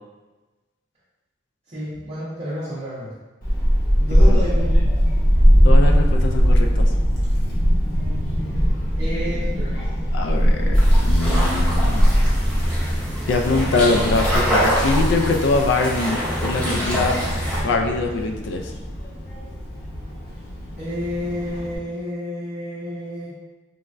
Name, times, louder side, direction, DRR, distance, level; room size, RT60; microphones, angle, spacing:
voice 1, 1.7-3.2 4.0-4.9 9.0-9.9 20.8-23.4, equal, 35° right, -11 dB, 0.6 m, -30 dB
Child speech kid speaking / Wind, 3.4-21.8, equal, 50° left, 0.8 m, -20 dB
voice 2, 4.1-4.4 5.6-6.9 10.1-12.1 13.3-17.1 17.6-18.7, left 3 dB, 70° left, 3 dB, 0.3 m, -23 dB
sound 1, 10.7-17.6, equal, 5° left, 0.6 m, -25 dB
3.2 x 2.1 x 2.4 m, 1.2 s
head